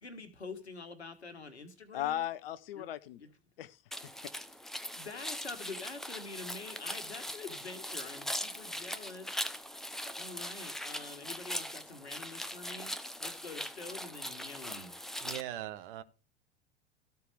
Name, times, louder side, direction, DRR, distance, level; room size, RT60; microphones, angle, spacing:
voice 1, 0.0-2.2 2.7-2.8 3.2-3.3 4.9-9.4 10.1-15.0, left 4 dB, 80° left, 1.6 m, -46 dB
voice 2, 1.9-3.2 3.6-4.3, left 12 dB, 60° left, 0.8 m, -37 dB
sound 1, 3.9-15.4, equal, ahead, 0.5 m, -40 dB
voice 3, 15.2-16.0, right 13 dB, 55° right, 0.9 m, -40 dB
13.5 x 4.7 x 6.5 m
figure-of-eight pair, 80°, 32 cm